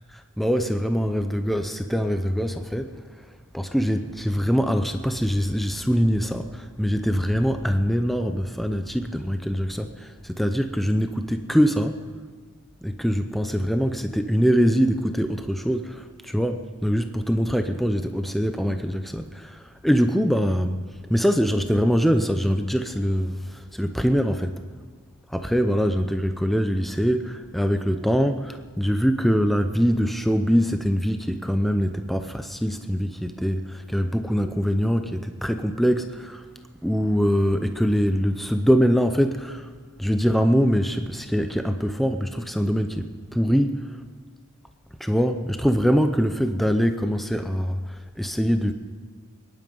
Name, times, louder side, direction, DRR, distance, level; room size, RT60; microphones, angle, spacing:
voice 1, 0.4-3.0 3.5-12.0 12.8-20.8 21.1-24.5 25.3-36.4 36.8-39.7 40.0-43.9 45.0-48.7, equal, ahead, 7 dB, 0.6 m, -23 dB
23.5 x 10.5 x 5.4 m, 1.5 s
head